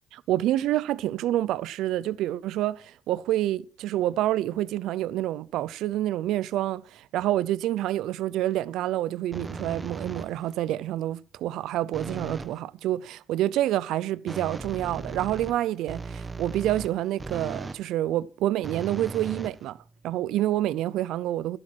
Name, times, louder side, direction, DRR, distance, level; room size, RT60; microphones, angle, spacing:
voice 1, 0.1-19.8 20.0-21.6, right 13 dB, 90° right, 0.5 m, -28 dB
sound 1, 9.3-10.5 11.9-12.6 14.3-17.9 18.6-20.1, right 3 dB, 25° right, 1.4 m, -37 dB
12.0 x 11.5 x 4.5 m
cardioid pair, 90°, 0 cm